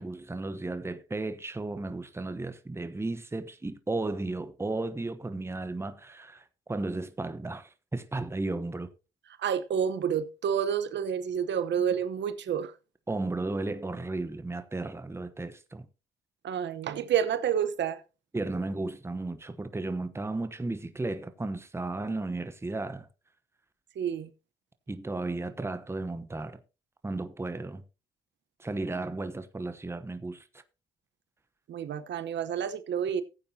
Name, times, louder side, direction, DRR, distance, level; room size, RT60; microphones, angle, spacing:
voice 1, 0.0-8.9 13.1-15.9 18.3-23.1 24.9-26.6 27.0-27.8 28.6-30.6, right 2 dB, 10° right, 1.0 m, -34 dB
voice 2, 9.4-12.7 16.4-18.0 24.0-24.3 31.7-33.2, right 8 dB, 65° right, 1.0 m, -29 dB
15.5 x 8.7 x 2.8 m
cardioid pair, 90°, 20 cm